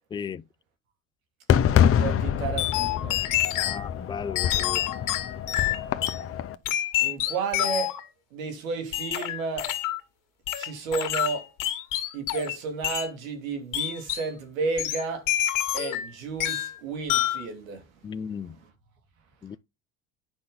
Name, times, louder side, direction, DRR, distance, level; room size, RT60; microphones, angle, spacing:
voice 1, 0.1-0.4 3.5-4.8 18.0-18.6 19.4-19.6, left 7 dB, 10° left, 0.4 m, -35 dB
Fireworks, 1.5-6.6, left 9 dB, 35° left, 0.9 m, -26 dB
voice 2, 2.0-3.2 7.0-8.0 8.3-9.7 10.6-11.5 12.1-15.3 15.7-18.7, right 4 dB, 85° right, 2.7 m, -32 dB
sound 1, 2.6-3.8 4.3-6.2 6.6-8.0 8.9-10.0 10.5-12.6 12.8-13.1 13.7-14.3 14.8-16.1 16.4-16.8 17.1-17.4, left 13 dB, 50° left, 1.9 m, -27 dB
8.8 x 5.6 x 3.9 m
supercardioid pair, 100°, 39 cm